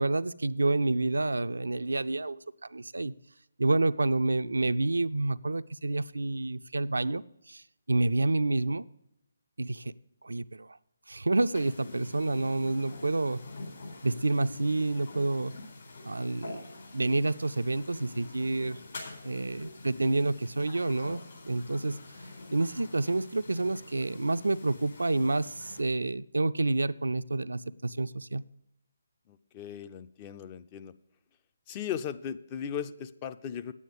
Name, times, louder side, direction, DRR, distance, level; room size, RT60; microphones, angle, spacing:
voice 1, 0.0-2.4 2.7-3.1 3.6-7.2 7.5-8.8 9.6-9.9 10.2-10.8 11.1-13.4 14.0-15.5 16.1-16.6 16.9-18.8 19.2-22.0 22.5-28.4, right 2 dB, 75° right, 13 dB, 0.4 m, -28 dB
sound 1, 11.5-25.8, left 2 dB, 60° left, 4.1 m, -46 dB
voice 2, 29.3-30.9 31.7-33.7, left 8 dB, 25° left, 11 dB, 0.4 m, -37 dB
9.2 x 8.4 x 5.2 m, 0.82 s
figure-of-eight pair, 145°, 0 cm